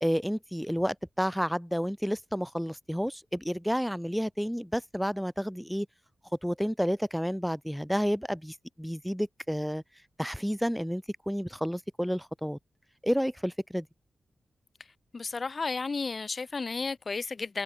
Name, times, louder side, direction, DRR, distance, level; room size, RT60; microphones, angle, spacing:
voice 1, 0.0-5.9 6.4-9.8 10.2-12.6 13.0-13.9, equal, ahead, 0.6 m, -30 dB
voice 2, 15.1-17.6, left 4 dB, 40° left, 1.0 m, -33 dB
wide cardioid pair, 135°, 0 cm